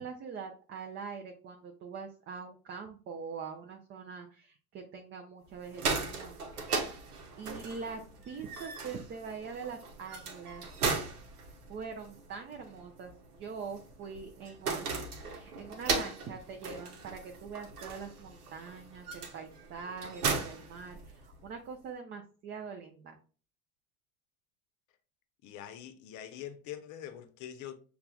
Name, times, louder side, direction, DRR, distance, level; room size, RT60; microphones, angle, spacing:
voice 1, 0.0-6.8 7.4-10.6 11.7-23.2, right 5 dB, 25° right, 0.5 m, -43 dB
sound 1, 5.5-21.5, right 4 dB, 75° right, 0.9 m, -38 dB
voice 2, 25.4-27.7, left 10 dB, 40° left, 0.7 m, -44 dB
6.6 x 2.3 x 2.3 m
figure-of-eight pair, 70°, 45 cm